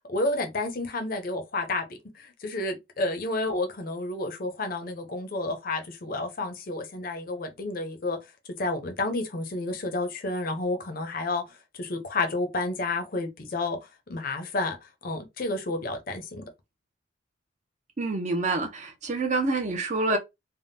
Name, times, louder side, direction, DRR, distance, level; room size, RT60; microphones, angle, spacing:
voice 1, 0.1-1.8 2.1-8.2 8.6-13.8 14.1-16.5, left 2 dB, 50° left, 0.6 m, -30 dB
voice 2, 18.0-20.2, right 3 dB, 40° right, 0.5 m, -27 dB
3.5 x 2.1 x 2.6 m
head